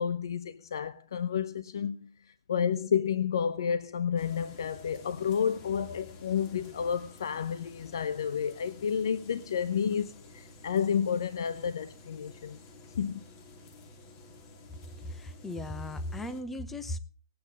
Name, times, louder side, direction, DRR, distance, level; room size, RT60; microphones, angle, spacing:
voice 1, 0.0-2.1 2.5-12.6 13.0-13.2, left 7 dB, 70° left, 0.8 m, -30 dB
sound 1, 4.2-16.4, left 2 dB, 30° left, 2.5 m, -52 dB
voice 2, 15.1-17.0, left 1 dB, 5° left, 0.9 m, -37 dB
17.5 x 8.8 x 5.2 m
hypercardioid pair, 145°, 2 cm